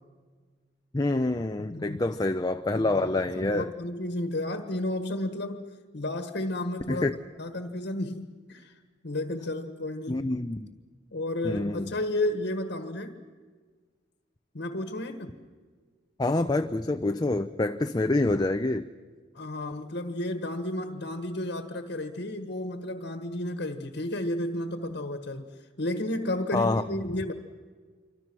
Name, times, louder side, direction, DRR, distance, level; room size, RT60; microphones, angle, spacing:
voice 1, 0.9-3.7 6.9-7.1 10.1-10.7 11.4-11.9 16.2-18.9 26.5-26.8, left 2 dB, 20° left, 7 dB, 0.6 m, -27 dB
voice 2, 1.6-2.0 2.7-7.1 7.4-8.8 9.0-10.3 11.1-13.2 14.5-15.4 19.3-25.5 25.8-27.3, left 1 dB, 65° left, 7 dB, 1.5 m, -32 dB
27.0 x 24.5 x 6.2 m, 1.5 s
head